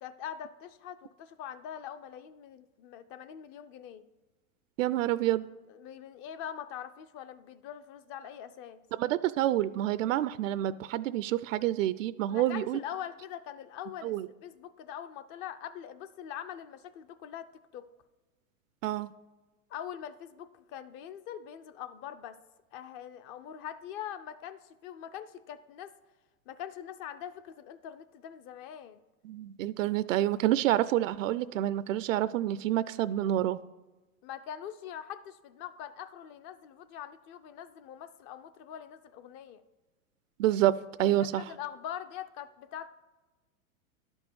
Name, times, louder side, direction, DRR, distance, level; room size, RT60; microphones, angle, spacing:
voice 1, 0.0-4.0 5.7-8.8 12.3-14.2 14.4-17.8 19.7-22.4 22.7-25.9 26.5-29.0 34.2-39.6 41.0-42.9, left 10 dB, 30° left, 12 dB, 0.4 m, -43 dB
voice 2, 4.8-5.5 9.0-12.8 14.0-14.3 18.8-19.1 29.2-33.6 40.4-40.7 41.0-41.4, right 13 dB, 65° right, 16 dB, 0.5 m, -28 dB
11.0 x 5.3 x 6.1 m, 1.2 s
hypercardioid pair, 120°, 42 cm